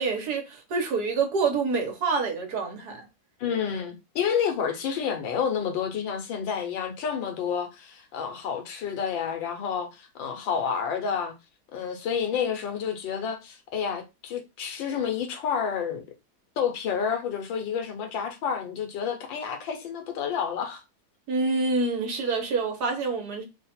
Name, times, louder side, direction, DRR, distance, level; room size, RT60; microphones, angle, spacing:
voice 1, 0.0-3.0 21.3-23.5, right 4 dB, 60° right, 1.5 m, -27 dB
voice 2, 3.4-11.3 11.7-16.0 16.6-20.8, left 7 dB, 75° left, 1.6 m, -29 dB
3.8 x 2.4 x 4.2 m
omnidirectional pair, 2.1 m